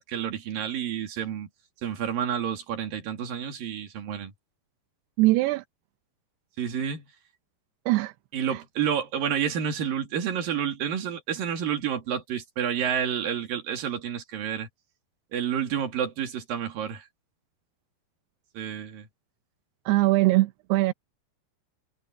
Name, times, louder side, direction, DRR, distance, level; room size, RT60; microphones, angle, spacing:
voice 1, 0.0-1.5 1.8-4.3 6.6-7.1 8.3-14.7 15.3-17.1 18.5-19.1, right 8 dB, 60° right, 4.1 m, -29 dB
voice 2, 5.2-5.6 7.9-8.1 8.5-8.6 19.9-20.9, right 19 dB, 85° right, 2.8 m, -22 dB
omnidirectional pair, 4.7 m